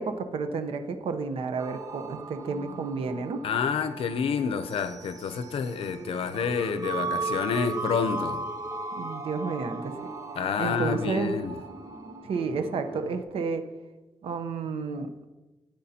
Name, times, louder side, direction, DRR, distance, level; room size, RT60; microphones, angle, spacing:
voice 1, 0.0-3.4 9.0-10.1 10.6-11.4 12.2-13.6 14.2-15.1, right 4 dB, 85° right, 0.8 m, -31 dB
sound 1, 1.6-13.2, right 3 dB, 40° right, 0.7 m, -37 dB
voice 2, 3.4-8.4 10.4-11.6, left 6 dB, 90° left, 0.6 m, -28 dB
12.5 x 9.2 x 2.8 m
wide cardioid pair, 135°, 9 cm